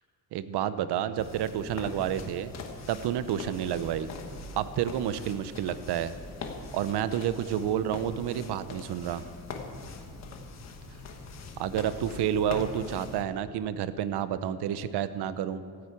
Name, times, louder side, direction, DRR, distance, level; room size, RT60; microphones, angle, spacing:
voice 1, 0.3-2.5 2.9-4.1 4.6-6.1 6.7-9.3 11.6-15.6, right 10 dB, 85° right, 13 dB, 0.8 m, -30 dB
sound 1, 1.2-13.2, left 3 dB, 40° left, 1.4 m, -42 dB
13.5 x 10.5 x 8.4 m, 2.3 s
cardioid pair, 175°, 39 cm